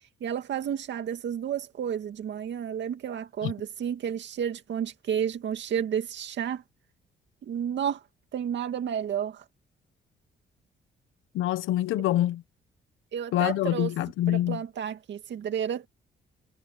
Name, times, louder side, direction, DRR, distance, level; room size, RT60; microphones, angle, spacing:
voice 1, 0.2-6.6 7.4-8.0 8.3-9.4 13.1-13.9 14.3-15.9, right 8 dB, 65° right, 2.2 m, -31 dB
voice 2, 11.3-12.4 13.3-14.6, left 13 dB, 85° left, 1.1 m, -25 dB
cardioid pair, 90°, 20 cm